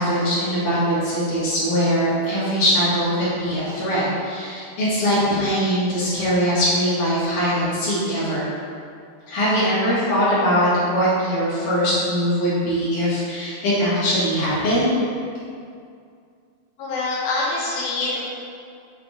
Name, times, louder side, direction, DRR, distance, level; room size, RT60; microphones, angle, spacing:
voice 1, 0.0-8.5 9.3-15.0, equal, 60° left, -10 dB, 3.0 m, -21 dB
voice 2, 16.8-18.3, left 3 dB, 75° left, -5 dB, 2.2 m, -25 dB
6.8 x 3.7 x 4.9 m, 2.3 s
omnidirectional pair, 4.6 m